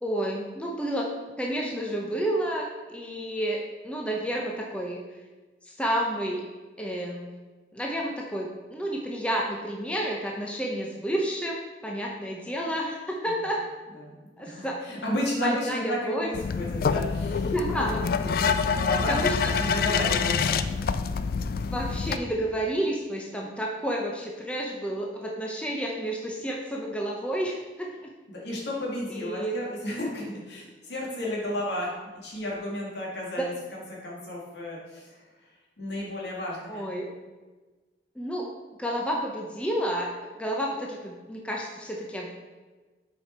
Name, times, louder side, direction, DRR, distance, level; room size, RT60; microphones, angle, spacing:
voice 1, 0.0-1.1 1.4-5.0 5.6-6.4 6.8-7.3 7.7-13.6 14.4-15.0 15.4-16.3 17.4-18.0 19.1-19.6 21.6-28.1 29.1-29.6 33.4-33.5 36.7-37.1 38.2-38.5 38.8-40.1 40.4-42.3, right 1 dB, 5° left, -2 dB, 0.6 m, -30 dB
voice 2, 14.0-17.5 18.2-20.7 28.3-35.2 35.8-36.9, left 1 dB, 65° left, -4 dB, 2.0 m, -33 dB
sound 1, 16.3-22.2, left 5 dB, 50° left, 0.3 m, -26 dB
7.4 x 5.1 x 4.3 m, 1.3 s
head